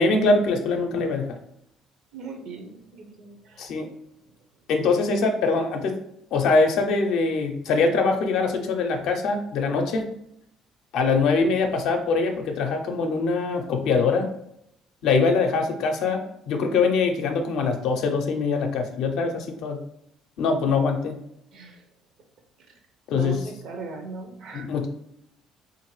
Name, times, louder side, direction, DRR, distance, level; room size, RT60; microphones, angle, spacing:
voice 1, 0.0-1.4 3.6-3.9 4.7-6.0 6.3-10.1 10.9-14.3 15.0-19.8 20.4-21.2 23.1-23.4 24.5-24.9, left 4 dB, 75° left, 4 dB, 0.5 m, -23 dB
voice 2, 2.1-3.7 21.5-21.8 23.1-24.7, right 4 dB, 65° right, 4 dB, 0.6 m, -38 dB
2.9 x 2.5 x 3.1 m, 0.76 s
supercardioid pair, 80°, 0 cm